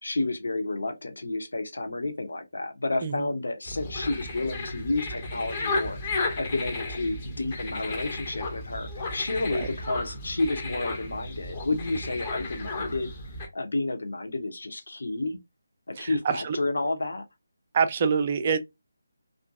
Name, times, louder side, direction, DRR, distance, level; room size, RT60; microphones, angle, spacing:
voice 1, 0.0-13.1 13.5-15.4 15.9-17.2, left 2 dB, 60° left, 0.7 m, -30 dB
sound 1, 3.7-13.5, left 2 dB, 25° left, 0.6 m, -34 dB
voice 2, 16.0-16.6 17.7-18.6, right 6 dB, 30° right, 0.4 m, -25 dB
2.5 x 2.5 x 2.3 m
figure-of-eight pair, 150°, 0 cm